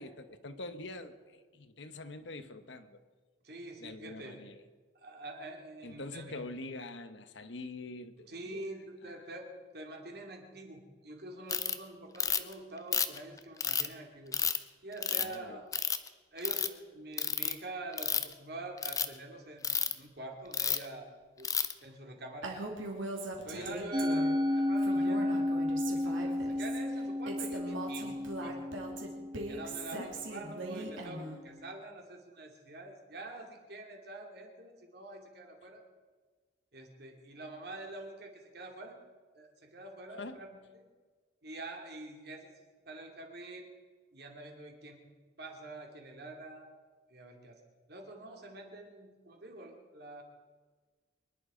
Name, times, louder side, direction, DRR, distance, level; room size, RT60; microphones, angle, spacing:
voice 1, 0.0-3.0 3.8-4.6 5.8-8.7 9.0-9.3 15.2-15.6 23.4-23.8 29.9-30.1 40.2-40.4, left 2 dB, 65° left, 10 dB, 1.1 m, -45 dB
voice 2, 3.4-4.4 4.9-6.3 8.3-14.4 14.8-15.8 16.3-21.5 21.8-22.6 23.4-25.5 25.9-28.8 29.5-35.8 36.7-39.0 39.3-40.5 40.7-40.9 41.4-42.5 42.9-43.7 44.1-45.1 45.4-46.7 47.1-47.6 47.9-50.2, right 2 dB, 55° right, 2 dB, 2.7 m, -46 dB
Ratchet pawl, 11.5-11.7 12.2-12.5 12.9-13.9 14.3-14.6 15.0-15.3 15.7-16.1 16.4-16.7 17.2-17.5 17.9-18.3 18.8-19.1 19.6-19.9 20.5-20.9 21.4-21.7, left 7 dB, 15° left, 0.6 m, -30 dB
Female speech woman speaking, 22.4-24.4 24.8-26.8 27.3-31.4, right 2 dB, 85° right, 3.1 m, -40 dB
Musical instrument, 23.9-30.3, left 1 dB, 25° right, 1.2 m, -32 dB
24.5 x 11.0 x 5.1 m, 1.4 s
head